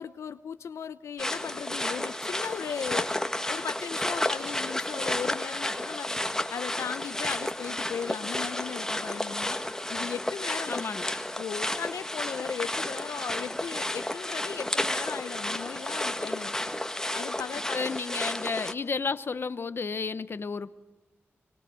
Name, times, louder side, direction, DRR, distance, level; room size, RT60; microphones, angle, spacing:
voice 1, 0.0-3.1 3.5-6.1 6.5-9.6 9.9-10.8 11.4-16.6 17.1-18.1, left 7 dB, 85° left, 0.8 m, -37 dB
sound 1, 1.2-18.7, left 1 dB, 10° left, 1.7 m, -32 dB
voice 2, 10.7-11.1 17.7-20.7, left 5 dB, 50° left, 0.9 m, -32 dB
24.5 x 23.0 x 7.7 m
cardioid pair, 65°, 5 cm